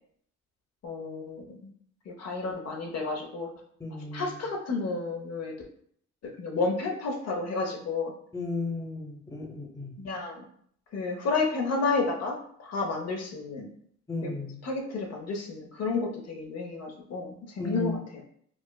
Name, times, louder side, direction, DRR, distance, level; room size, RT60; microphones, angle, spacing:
voice 1, 0.8-1.6 2.1-3.5 4.1-5.5 6.4-8.1 10.0-10.4 10.9-13.7 14.2-14.3 14.6-18.2, left 3 dB, 60° left, 1 dB, 0.7 m, -31 dB
voice 2, 3.8-4.4 8.3-9.9 14.1-14.6 17.6-18.0, left 3 dB, 10° left, 0 dB, 0.8 m, -34 dB
4.8 x 2.0 x 2.2 m, 0.64 s
cardioid pair, 90°, 30 cm